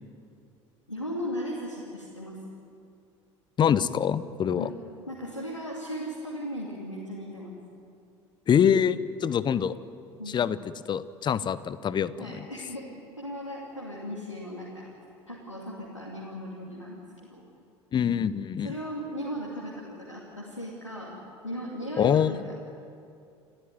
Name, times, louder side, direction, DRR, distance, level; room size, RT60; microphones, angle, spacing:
voice 1, 0.9-2.4 4.6-4.7 5.1-7.6 10.2-10.4 12.2-14.9 15.3-17.0 17.3-17.5 18.6-22.5, equal, 90° left, -4 dB, 2.6 m, -37 dB
voice 2, 3.6-4.7 8.5-9.7 10.3-10.6 10.9-12.5 17.9-18.7 22.0-22.3, left 8 dB, 30° left, 17 dB, 0.8 m, -25 dB
29.0 x 13.5 x 9.5 m, 2.5 s
figure-of-eight pair, 65°, 15 cm